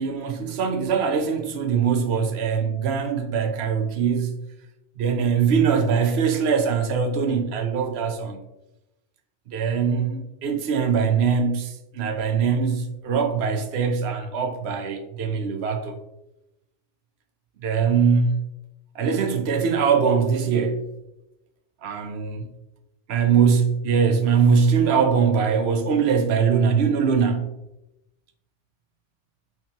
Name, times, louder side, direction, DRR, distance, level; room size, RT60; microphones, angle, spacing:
voice 1, 0.0-4.4 5.0-8.4 9.5-16.0 17.6-18.4 18.9-20.8 21.8-22.4 23.1-27.5, right 6 dB, 65° right, 0.9 m, -22 dB
4.3 x 4.2 x 2.9 m
omnidirectional pair, 1.2 m